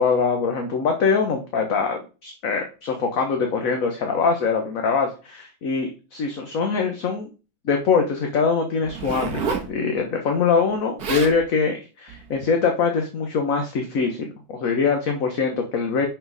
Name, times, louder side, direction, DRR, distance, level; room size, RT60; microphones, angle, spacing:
voice 1, 0.0-7.3 7.6-16.1, left 5 dB, 50° left, 3 dB, 1.3 m, -23 dB
Zipper (clothing), 8.8-9.7 10.7-10.8 11.0-11.4 12.1-12.3, right 5 dB, 50° right, 1.8 m, -29 dB
10.0 x 4.5 x 4.0 m, 0.33 s
omnidirectional pair, 2.2 m